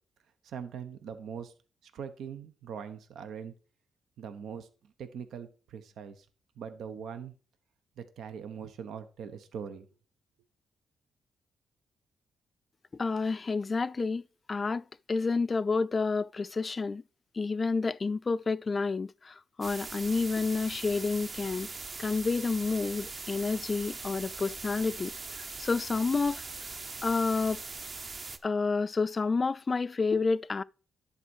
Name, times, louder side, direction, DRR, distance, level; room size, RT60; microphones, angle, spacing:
voice 1, 0.4-1.5 1.8-3.5 4.2-6.3 6.6-7.3 8.0-9.9, right 7 dB, 85° right, 1.0 m, -42 dB
voice 2, 13.0-14.2 14.5-17.0 17.4-21.7 22.0-26.5 27.0-27.6 28.4-30.6, left 4 dB, 35° left, 0.3 m, -29 dB
sound 1, 19.6-28.4, right 4 dB, 40° right, 0.9 m, -41 dB
11.0 x 4.3 x 6.3 m
cardioid pair, 95°, 0 cm